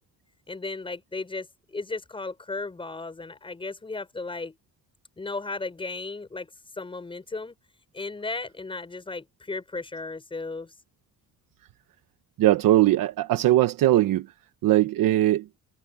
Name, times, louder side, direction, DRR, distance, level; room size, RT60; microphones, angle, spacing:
voice 1, 0.5-4.6 5.2-6.5 6.8-7.6 7.9-10.7, left 3 dB, 15° left, 6.5 m, -35 dB
voice 2, 12.4-14.3 14.6-15.5, right 14 dB, 90° right, 1.0 m, -20 dB
cardioid pair, 175°, 33 cm